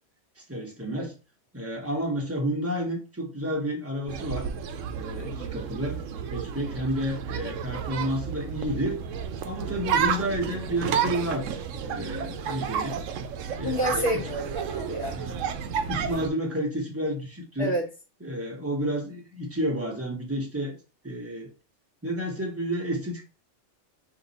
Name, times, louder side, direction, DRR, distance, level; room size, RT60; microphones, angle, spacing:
voice 1, 0.5-1.1 1.5-4.5 5.0-6.0 6.3-9.0 9.4-13.0 13.6-14.1 15.1-15.4 15.9-17.7 18.2-20.7 21.0-21.5 22.0-23.2, equal, 10° right, 0 dB, 1.0 m, -30 dB
sound 1, 4.1-16.3, right 7 dB, 90° right, 0.9 m, -31 dB
voice 2, 13.6-15.2 17.6-17.9, equal, 55° left, -4 dB, 1.1 m, -29 dB
4.0 x 2.8 x 4.0 m, 0.32 s
omnidirectional pair, 1.3 m